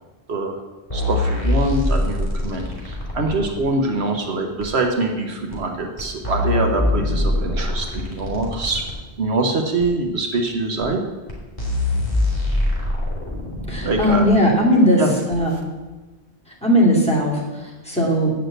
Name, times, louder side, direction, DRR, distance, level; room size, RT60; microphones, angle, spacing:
sound 1, 0.9-3.6 4.6-4.7 5.5-5.6 6.0-9.0 9.8-9.9 10.8-10.9 11.3-11.4 11.6-14.3 15.3-15.4, left 2 dB, 30° left, 3.2 m, -23 dB
voice 1, 0.9-8.8 9.2-11.0 13.8-14.3 15.0-15.1, right 2 dB, 70° right, 3 dB, 1.3 m, -24 dB
voice 2, 13.7-15.0 15.3-15.5 16.5-18.3, equal, 5° left, -4 dB, 2.4 m, -18 dB
8.2 x 6.6 x 7.8 m, 1.2 s
omnidirectional pair, 1.1 m